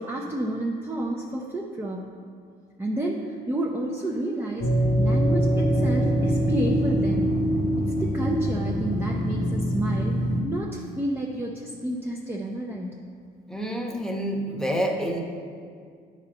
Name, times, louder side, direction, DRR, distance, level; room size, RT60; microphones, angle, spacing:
voice 1, 0.0-2.1 2.8-4.7 5.0-7.4 7.8-10.2 10.4-13.0, right 1 dB, 15° right, -1 dB, 0.6 m, -30 dB
sound 1, 4.6-10.4, equal, 85° left, 1.2 m, -24 dB
voice 2, 13.5-15.2, equal, 5° left, 1 dB, 1.0 m, -28 dB
9.5 x 4.2 x 5.3 m, 2.1 s
cardioid pair, 110°, 17 cm